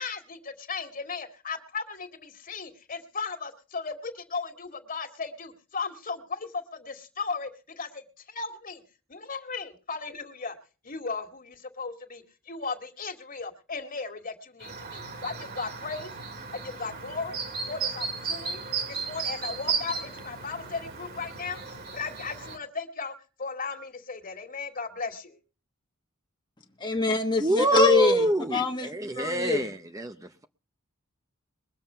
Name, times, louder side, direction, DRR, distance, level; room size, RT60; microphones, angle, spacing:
voice 1, 0.0-8.8 9.1-10.6 10.8-16.1 16.5-17.4 17.7-18.6 18.9-21.6 21.9-25.4, left 4 dB, 40° left, 2.1 m, -36 dB
Chirp tweet, 14.6-22.6, right 5 dB, 50° right, 2.3 m, -35 dB
voice 2, 26.8-28.9 29.2-29.6, left 4 dB, 20° left, 1.2 m, -24 dB
voice 3, 27.4-30.4, right 1 dB, 15° right, 0.6 m, -26 dB
22.0 x 7.3 x 5.6 m
head